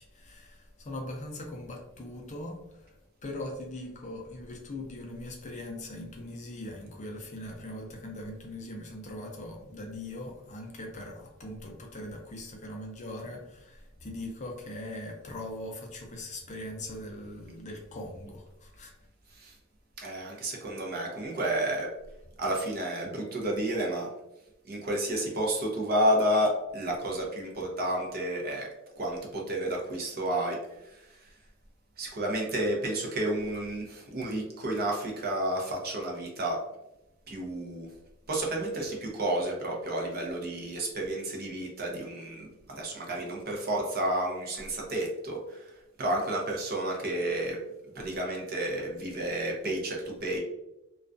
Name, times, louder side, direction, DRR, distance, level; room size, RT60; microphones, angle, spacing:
voice 1, 0.0-2.9 3.2-18.9, left 1 dB, 35° left, 1 dB, 0.4 m, -41 dB
voice 2, 20.0-21.9 22.4-24.1 24.7-28.7 29.0-30.6 30.8-31.2 32.0-36.6 37.3-37.9 38.3-45.7 46.0-47.6 47.9-50.4, right 1 dB, 45° right, -1 dB, 0.6 m, -31 dB
2.3 x 2.2 x 2.5 m, 0.91 s
head